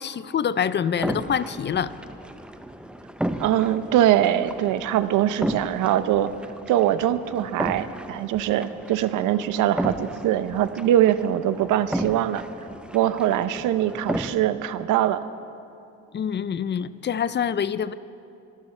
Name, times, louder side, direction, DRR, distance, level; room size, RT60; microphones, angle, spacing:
voice 1, 0.0-1.9 16.1-17.9, left 8 dB, 35° left, 15 dB, 0.5 m, -26 dB
sound 1, 0.9-14.3, right 1 dB, 5° right, 0.7 m, -34 dB
voice 2, 3.4-6.3 6.7-12.4 12.9-15.2, right 11 dB, 85° right, 13 dB, 0.6 m, -22 dB
25.0 x 13.0 x 3.3 m, 2.6 s
cardioid pair, 90°, 30 cm